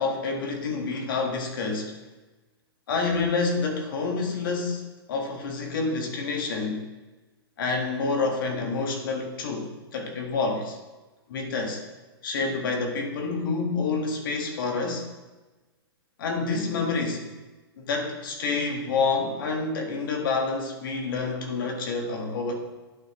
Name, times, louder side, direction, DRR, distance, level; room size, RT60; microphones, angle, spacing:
voice 1, 0.0-1.9 2.9-6.9 7.6-10.8 11.3-11.8 12.2-15.1 16.2-17.3 17.8-22.6, left 4 dB, 55° left, 2 dB, 1.5 m, -28 dB
11.5 x 4.0 x 3.0 m, 1.2 s
hypercardioid pair, 155°, 13 cm